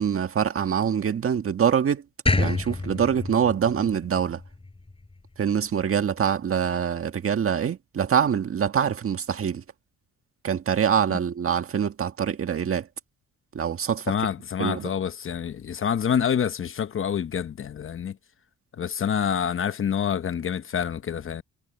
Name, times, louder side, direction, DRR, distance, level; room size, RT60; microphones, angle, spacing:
voice 1, 0.0-2.0 2.4-4.4 5.4-9.6 10.4-12.9 13.5-14.1 14.6-14.9, right 8 dB, 45° right, 1.7 m, -24 dB
sound 1, 2.3-5.4, left 2 dB, 20° left, 6.3 m, -28 dB
voice 2, 14.1-18.2 18.8-21.4, left 8 dB, 45° left, 0.9 m, -27 dB
cardioid pair, 90°, 30 cm